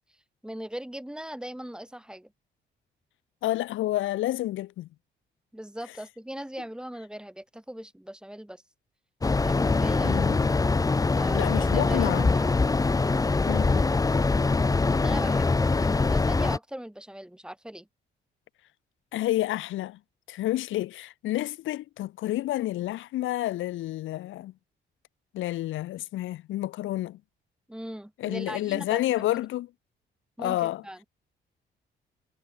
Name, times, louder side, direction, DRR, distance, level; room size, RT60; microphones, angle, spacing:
voice 1, 0.4-2.3 5.5-8.6 9.4-10.3 11.1-12.6 14.9-17.9 27.7-29.0 30.4-31.0, right 1 dB, 5° right, 7.3 m, -39 dB
voice 2, 3.4-4.9 10.0-10.5 11.3-12.3 13.5-13.8 19.1-20.0 20.3-24.5 25.3-27.2 28.2-29.7 30.4-30.8, left 15 dB, 80° left, 0.8 m, -29 dB
sound 1, 9.2-16.6, left 3 dB, 20° left, 0.8 m, -23 dB
cardioid pair, 90°, 20 cm